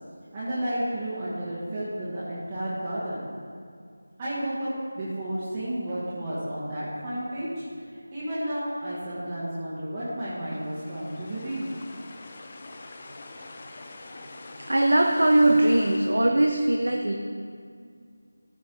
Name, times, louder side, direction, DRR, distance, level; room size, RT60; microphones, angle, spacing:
voice 1, 0.3-3.2 4.2-4.7 4.9-7.6 8.1-11.8, right 1 dB, 20° right, -11 dB, 1.5 m, -32 dB
sound 1, 10.4-16.0, left 2 dB, 30° left, 0.5 m, -45 dB
voice 2, 14.6-17.2, right 1 dB, 60° right, 3 dB, 0.7 m, -21 dB
13.5 x 5.1 x 3.9 m, 2.2 s
figure-of-eight pair, 165°, 0 cm